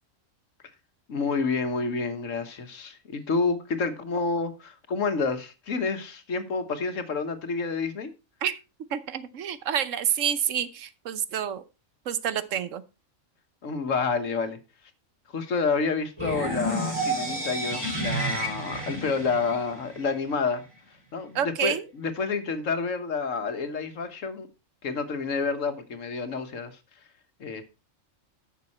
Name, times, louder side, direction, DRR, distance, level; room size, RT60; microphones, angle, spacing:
voice 1, 1.1-8.1 13.6-14.6 15.3-20.6 21.1-24.5 24.8-26.7 27.4-27.6, left 4 dB, 75° left, 1.6 m, -29 dB
voice 2, 8.9-11.6 12.1-12.8 21.3-21.8, right 9 dB, 75° right, 1.1 m, -28 dB
sound 1, 16.2-20.1, right 1 dB, 20° right, 4.2 m, -30 dB
11.0 x 6.8 x 4.2 m
omnidirectional pair, 1.3 m